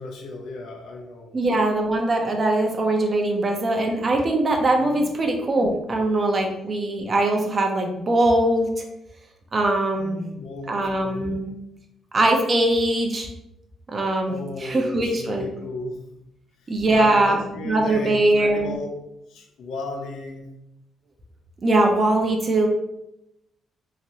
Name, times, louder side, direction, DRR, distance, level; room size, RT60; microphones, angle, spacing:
voice 1, 0.0-1.3 4.8-5.1 9.9-11.4 14.3-16.0 16.6-18.9 19.3-20.5, left 2 dB, 80° left, 2 dB, 0.6 m, -35 dB
voice 2, 1.3-8.8 9.5-10.2 10.7-11.5 12.1-13.3 13.9-15.5 16.7-17.4 17.6-18.8 21.6-22.7, right 2 dB, 35° right, 3 dB, 0.6 m, -21 dB
2.9 x 2.6 x 2.9 m, 0.85 s
cardioid pair, 90°, 0 cm